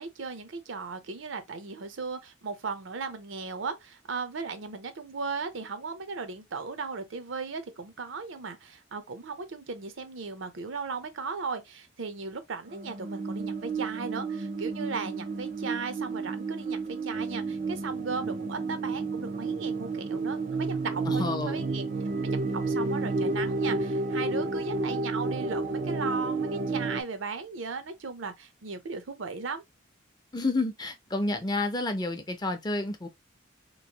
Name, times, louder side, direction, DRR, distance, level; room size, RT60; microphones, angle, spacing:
voice 1, 0.0-21.8 22.3-29.6, right 4 dB, 80° right, 0.6 m, -36 dB
sound 1, 12.7-27.0, right 3 dB, 40° right, 0.4 m, -31 dB
voice 2, 21.1-21.7 30.3-33.1, left 2 dB, 20° left, 0.5 m, -30 dB
3.0 x 2.5 x 2.8 m
head